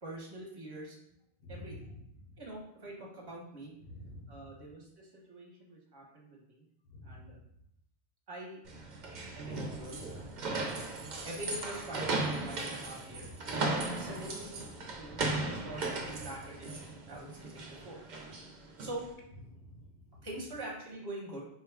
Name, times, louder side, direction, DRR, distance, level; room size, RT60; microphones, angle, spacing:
voice 1, 0.0-1.0 1.5-1.9 2.4-3.7 4.3-6.6 7.0-7.4 8.3-8.6 9.3-10.5 11.2-13.3 13.9-14.6 15.0-18.3 18.8-19.1 20.2-21.4, right 1 dB, 25° right, -2 dB, 0.9 m, -45 dB
voice 2, 1.4-1.9 3.9-4.4 6.9-7.2 9.9-10.3 19.5-20.2, left 1 dB, 60° left, 1 dB, 0.9 m, -49 dB
sound 1, 8.7-19.1, right 2 dB, 50° right, 0.6 m, -37 dB
4.4 x 2.3 x 3.4 m, 0.77 s
omnidirectional pair, 1.1 m